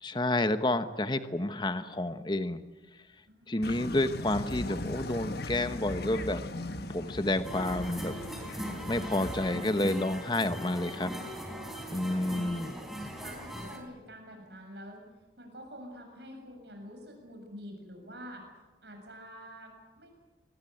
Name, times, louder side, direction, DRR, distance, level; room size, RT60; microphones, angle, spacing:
voice 1, 0.0-2.6 3.5-6.5 6.9-8.1 8.9-11.1 11.9-12.7, left 1 dB, 25° left, 10 dB, 1.1 m, -30 dB
voice 2, 3.3-4.0 11.9-15.1 15.4-18.4 18.8-20.1, equal, 65° right, 3 dB, 7.3 m, -48 dB
sound 1, 3.6-9.5, left 2 dB, 55° left, 1.3 m, -39 dB
sound 2, 7.4-13.8, equal, ahead, 4.0 m, -40 dB
25.0 x 20.5 x 9.3 m, 1.2 s
head